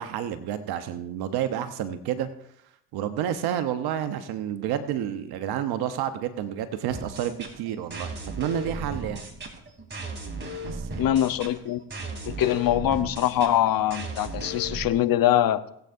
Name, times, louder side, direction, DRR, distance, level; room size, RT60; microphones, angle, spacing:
voice 1, 0.0-2.3 2.9-9.2 10.6-11.0, right 10 dB, 65° right, 10 dB, 1.0 m, -30 dB
sound 1, 6.9-14.9, right 2 dB, 25° right, 3.1 m, -36 dB
voice 2, 11.0-11.8 12.2-15.6, left 12 dB, 55° left, 12 dB, 0.9 m, -23 dB
20.0 x 8.0 x 2.6 m, 0.74 s
hypercardioid pair, 50°, 40 cm